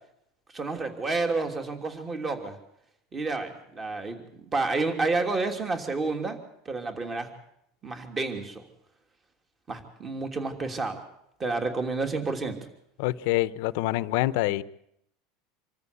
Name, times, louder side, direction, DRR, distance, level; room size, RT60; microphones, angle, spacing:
voice 1, 0.5-2.6 3.1-4.2 4.5-6.4 6.6-7.3 7.8-8.6 9.7-11.0 11.4-12.6, right 3 dB, 20° right, 3.0 m, -30 dB
voice 2, 13.0-14.6, left 17 dB, 65° left, 0.9 m, -26 dB
26.0 x 14.0 x 8.5 m
supercardioid pair, 140°, 0 cm